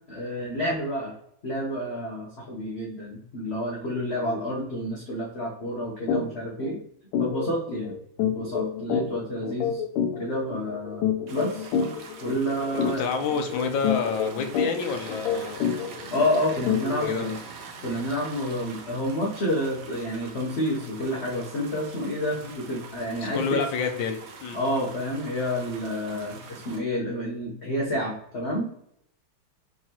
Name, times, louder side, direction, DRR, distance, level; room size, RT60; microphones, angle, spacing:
voice 1, 0.1-1.1 1.4-6.8 7.2-7.9 8.2-9.8 10.2-11.0 11.3-11.7 12.2-13.1 16.1-17.4 17.8-23.6 24.5-28.8, equal, 55° left, -4 dB, 0.7 m, -29 dB
sound 1, 6.1-6.3 6.6-6.8 7.1-17.4, left 7 dB, 90° left, 1.5 m, -29 dB
sound 2, 11.3-26.8, right 4 dB, 65° right, 0.9 m, -44 dB
voice 2, 12.8-15.6 17.0-17.3 23.2-24.6, left 5 dB, 70° left, 6 dB, 1.3 m, -28 dB
4.7 x 3.6 x 2.8 m, 0.71 s
omnidirectional pair, 2.3 m